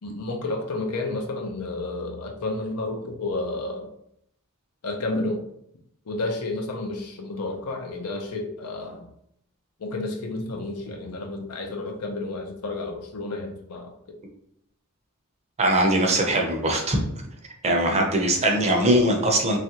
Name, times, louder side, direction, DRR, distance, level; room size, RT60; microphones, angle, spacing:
voice 1, 0.0-3.9 4.8-5.4 6.1-9.0 9.8-13.9 17.9-18.1, left 2 dB, 85° left, 3 dB, 0.6 m, -31 dB
voice 2, 15.6-17.0 17.6-19.6, right 1 dB, 30° right, 1 dB, 0.5 m, -21 dB
3.1 x 2.4 x 2.8 m, 0.74 s
head